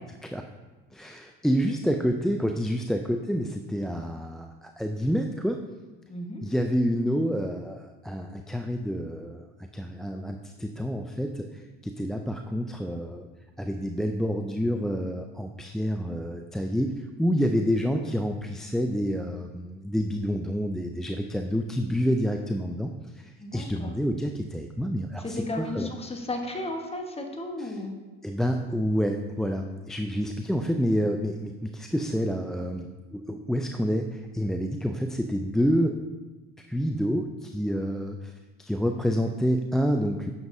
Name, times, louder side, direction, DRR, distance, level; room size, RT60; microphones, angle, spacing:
voice 1, 0.9-5.6 6.4-9.5 9.7-13.3 13.6-22.9 23.2-25.9 27.6-27.8 28.2-36.0 36.7-38.3 38.6-40.3, equal, ahead, 4 dB, 0.3 m, -28 dB
voice 2, 6.1-6.4 23.4-23.9 25.2-27.9, left 2 dB, 20° left, 3 dB, 1.3 m, -34 dB
9.5 x 7.0 x 2.7 m, 1.2 s
supercardioid pair, 85°, 33 cm